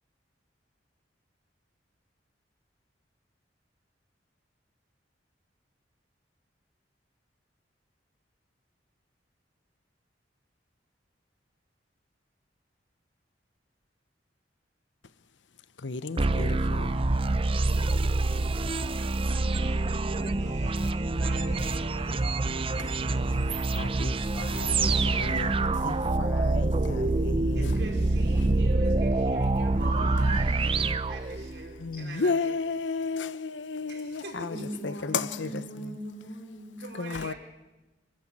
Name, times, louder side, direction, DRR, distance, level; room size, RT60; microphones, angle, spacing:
voice 1, 15.8-17.0 22.8-22.9 23.7-27.7 31.8-34.6 34.8-35.6 37.0-37.3, left 4 dB, 90° left, 0.9 m, -33 dB
sound 1, 16.2-31.8, right 2 dB, 30° right, 0.7 m, -26 dB
voice 2, 18.7-23.0 27.5-32.6 33.9-34.7 36.8-37.4, right 2 dB, 65° right, 5.1 m, -43 dB
voice 3, 34.5-37.1, equal, 55° left, 4.5 m, -40 dB
26.5 x 14.5 x 8.9 m
head